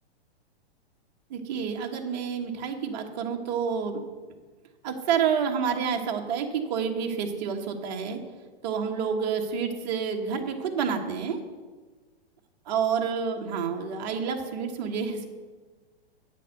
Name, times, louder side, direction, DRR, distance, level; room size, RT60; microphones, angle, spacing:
voice 1, 1.3-4.0 4.8-8.2 8.6-11.4 12.7-15.2, right 6 dB, 40° right, 3 dB, 1.3 m, -29 dB
8.8 x 7.6 x 6.5 m, 1.4 s
hypercardioid pair, 160°, 31 cm